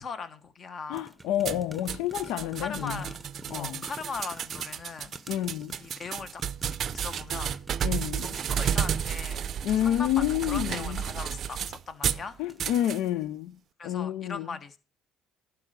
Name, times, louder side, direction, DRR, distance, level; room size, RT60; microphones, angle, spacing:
voice 1, 0.0-1.1 2.6-3.2 3.5-5.1 5.8-6.4 6.9-7.5 8.2-9.4 9.8-12.4 13.8-14.8, left 5 dB, 40° left, 1.3 m, -39 dB
voice 2, 0.9-3.0 3.5-3.8 5.3-5.7 7.8-8.3 9.6-11.0 12.4-13.5 13.8-14.5, left 12 dB, 75° left, 0.4 m, -29 dB
sound 1, 0.9-11.7 12.3-12.7 13.0-13.1, right 1 dB, 10° right, 0.8 m, -50 dB
sound 2, 1.4-12.3 12.6-13.0, right 9 dB, 50° right, 0.5 m, -32 dB
11.5 x 4.7 x 6.5 m
supercardioid pair, 95°, 0 cm